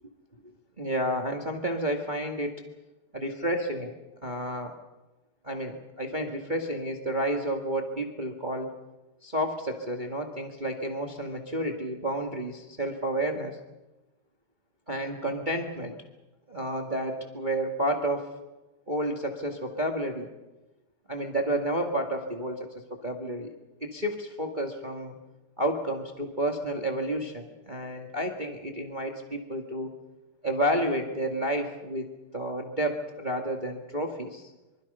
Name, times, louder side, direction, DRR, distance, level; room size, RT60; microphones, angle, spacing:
voice 1, 0.8-2.6 3.1-3.9 4.2-4.7 5.4-8.7 9.2-13.6 14.9-15.9 16.5-18.3 18.9-20.3 21.1-23.5 23.8-25.1 25.6-29.9 30.4-34.5, right 1 dB, 30° right, 2 dB, 0.8 m, -30 dB
25.0 x 25.0 x 5.6 m, 1.1 s
omnidirectional pair, 4.5 m